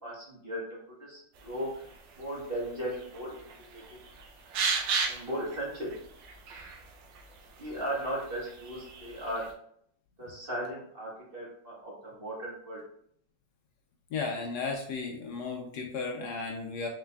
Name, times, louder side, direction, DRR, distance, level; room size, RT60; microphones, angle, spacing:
voice 1, 0.0-1.7 2.2-3.8 5.0-5.9 7.6-9.4 10.2-12.8, right 1 dB, 35° right, -6 dB, 1.3 m, -37 dB
sound 1, 1.4-9.5, right 5 dB, 85° right, 1.4 m, -37 dB
voice 2, 14.1-16.9, left 4 dB, 70° left, 1 dB, 1.1 m, -34 dB
4.0 x 3.9 x 2.2 m, 0.67 s
omnidirectional pair, 2.0 m